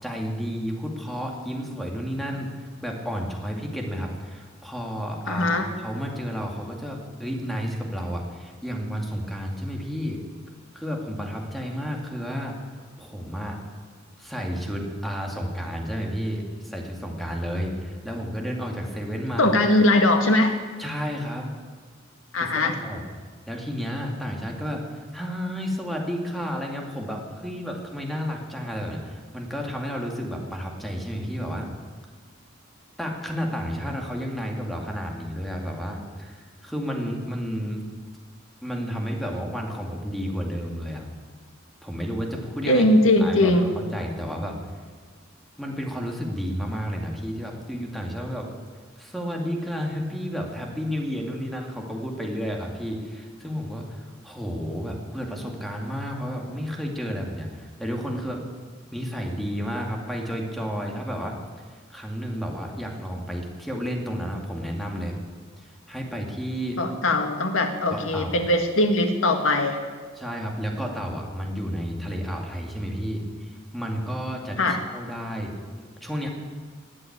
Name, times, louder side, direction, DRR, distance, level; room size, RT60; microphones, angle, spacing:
voice 1, 0.0-10.2 10.7-12.6 13.0-13.6 14.2-19.5 20.8-21.5 22.3-23.0 23.5-24.8 25.1-31.7 33.0-37.8 38.6-41.1 41.8-42.9 43.2-44.6 45.6-48.5 49.0-58.4 58.9-61.4 61.9-65.1 65.6-66.8 67.9-68.4 70.2-75.5 76.0-76.3, equal, ahead, 0 dB, 2.3 m, -31 dB
voice 2, 5.3-5.7 19.4-20.6 22.3-22.8 42.7-43.6 66.8-69.8 74.6-74.8, left 1 dB, 85° left, 5 dB, 1.8 m, -20 dB
20.0 x 7.8 x 8.7 m, 1.5 s
head